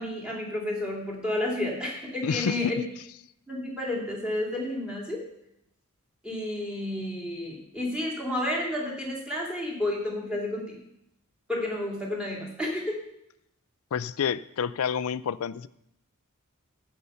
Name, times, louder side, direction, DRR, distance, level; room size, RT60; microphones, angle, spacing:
voice 1, 0.0-2.8 3.5-5.2 6.2-10.8 11.5-13.0, left 1 dB, 5° right, -2 dB, 2.6 m, -31 dB
voice 2, 2.2-2.7 13.9-15.7, left 7 dB, 70° left, 18 dB, 0.4 m, -28 dB
14.5 x 5.5 x 5.6 m, 0.78 s
head